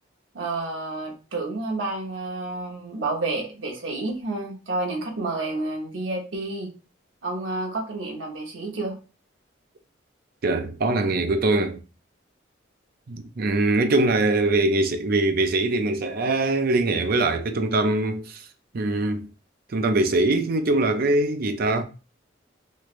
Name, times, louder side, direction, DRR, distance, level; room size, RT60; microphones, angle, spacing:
voice 1, 0.3-6.7 7.2-9.0, right 2 dB, 90° right, 0.9 m, -30 dB
voice 2, 10.4-11.8 13.1-18.4 18.7-19.3 19.7-21.8, right 2 dB, 50° right, 0.5 m, -22 dB
3.2 x 2.5 x 3.1 m
head